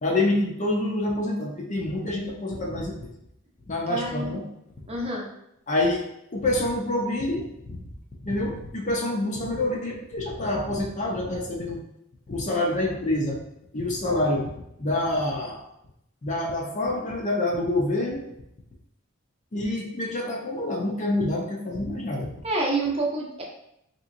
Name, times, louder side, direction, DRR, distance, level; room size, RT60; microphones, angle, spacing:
voice 1, 0.0-3.1 3.7-4.5 5.7-6.0 6.3-7.8 8.2-11.8 12.3-13.4 13.7-14.5 14.8-15.6 16.2-18.2 19.5-22.3, left 1 dB, 35° left, 0 dB, 0.5 m, -27 dB
voice 2, 3.9-4.4 4.9-5.3 22.4-23.4, right 2 dB, 30° right, -2 dB, 0.7 m, -27 dB
3.4 x 2.9 x 2.5 m, 0.79 s
head